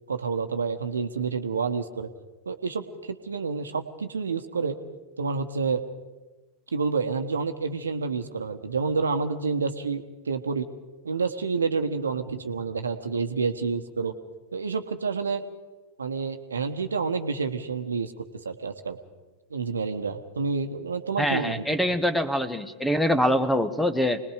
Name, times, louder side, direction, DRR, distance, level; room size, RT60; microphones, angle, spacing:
voice 1, 0.1-2.1 2.5-4.8 5.2-5.8 6.7-10.7 11.0-14.1 14.5-15.4 16.0-18.1 18.4-19.0 19.5-21.6, right 5 dB, 75° right, 8 dB, 1.2 m, -29 dB
voice 2, 21.2-24.2, equal, 5° left, 12 dB, 1.1 m, -24 dB
26.0 x 20.0 x 5.0 m, 1.2 s
figure-of-eight pair, 90°, 0 cm